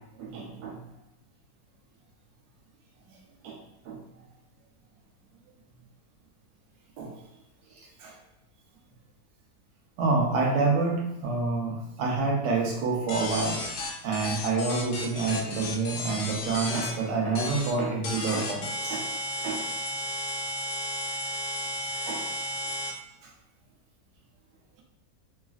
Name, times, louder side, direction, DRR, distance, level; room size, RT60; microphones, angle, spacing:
voice 1, 0.2-0.8 3.4-3.6 3.9-4.0 7.0-7.1 8.0-8.1 10.0-13.6 14.0-19.0 19.4-19.6 22.1-22.3, right 3 dB, 85° right, -1 dB, 1.2 m, -28 dB
sound 1, 13.1-16.9 17.3-17.7 18.0-22.9, left 1 dB, 70° left, 0.8 m, -33 dB
3.2 x 2.4 x 2.3 m, 0.88 s
omnidirectional pair, 1.7 m